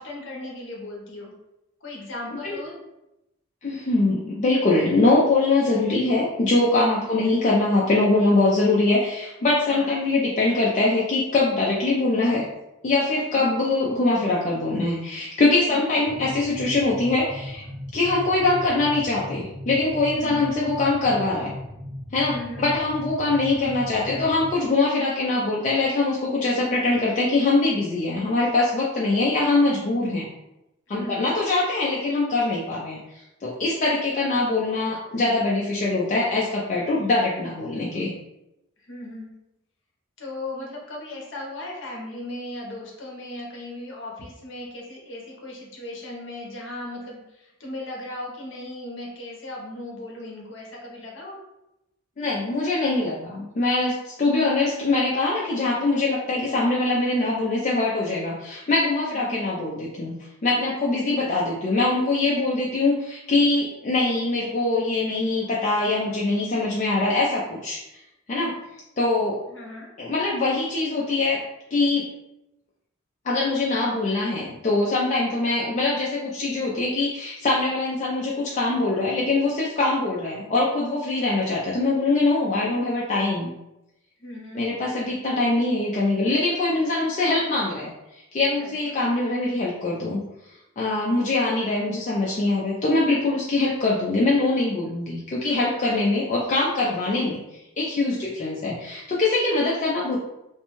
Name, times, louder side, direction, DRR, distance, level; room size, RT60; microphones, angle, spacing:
voice 1, 0.0-1.3 1.8-2.7 7.0-7.4 9.7-10.0 13.3-13.6 15.7-15.9 20.1-20.5 22.3-22.7 30.9-31.3 38.8-39.3 40.2-51.4 59.0-59.4 69.5-69.9 84.2-84.7 88.6-88.9 98.0-98.4, left 1 dB, 60° left, -2 dB, 0.7 m, -37 dB
voice 2, 3.6-12.4 12.8-17.6 17.9-21.6 22.1-30.3 30.9-38.1 52.2-60.1 60.4-67.8 68.3-68.6 69.0-69.4 70.0-71.4 71.7-72.1 73.2-83.5 84.5-90.2 90.8-97.4 97.8-100.2, left 2 dB, 35° left, -5 dB, 0.3 m, -23 dB
sound 1, 16.0-24.6, left 1 dB, 40° right, 1.3 m, -37 dB
2.5 x 2.2 x 3.0 m, 0.90 s
head